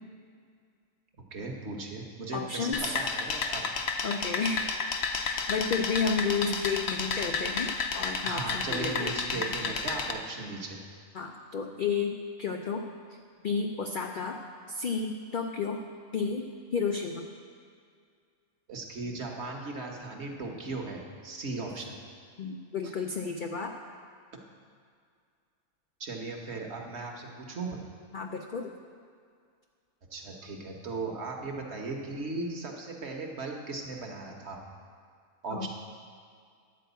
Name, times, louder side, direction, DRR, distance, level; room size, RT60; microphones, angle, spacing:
voice 1, 1.2-3.7 8.2-10.8 18.7-22.0 22.8-22.9 26.0-27.8 30.1-34.6 35.4-35.7, right 3 dB, 50° right, 1 dB, 1.2 m, -37 dB
voice 2, 2.3-3.0 4.0-4.7 5.2-9.1 11.1-12.9 13.4-14.4 14.7-15.8 16.1-17.3 22.4-23.7 28.1-28.7 35.5-35.7, left 5 dB, 80° left, 3 dB, 0.4 m, -32 dB
sound 1, 2.7-10.1, left 5 dB, 55° left, 0.8 m, -32 dB
11.0 x 4.6 x 8.0 m, 2.2 s
omnidirectional pair, 1.5 m